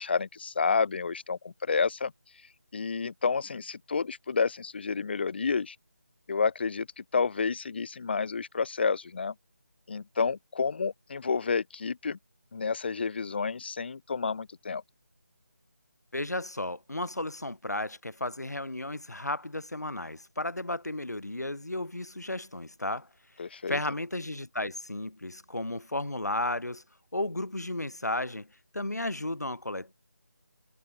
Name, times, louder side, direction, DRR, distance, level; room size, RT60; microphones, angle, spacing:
voice 1, 0.0-2.1 2.7-5.8 6.3-9.3 9.9-12.2 12.5-14.8 23.4-23.8, left 5 dB, 40° left, 1.8 m, -30 dB
voice 2, 16.1-23.1 23.7-26.8 27.1-28.5 28.7-29.9, left 1 dB, 80° left, 5.8 m, -33 dB
figure-of-eight pair, 160°, 9 cm